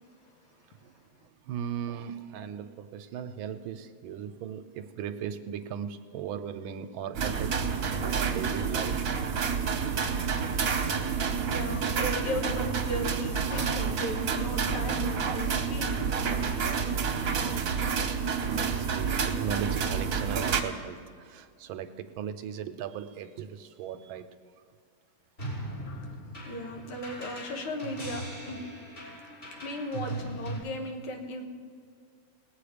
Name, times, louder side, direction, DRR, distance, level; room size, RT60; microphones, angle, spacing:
voice 1, 1.4-9.2 18.5-24.3, right 8 dB, 75° right, 10 dB, 1.3 m, -38 dB
sound 1, 7.1-20.6, right 6 dB, 50° right, 1.1 m, -29 dB
voice 2, 11.5-16.1 16.4-16.9 26.5-28.6 29.5-31.4, left 1 dB, 80° left, 3 dB, 2.2 m, -36 dB
sound 2, 25.4-30.6, right 1 dB, 30° left, 3.7 m, -39 dB
19.5 x 8.2 x 5.0 m, 2.2 s
omnidirectional pair, 2.4 m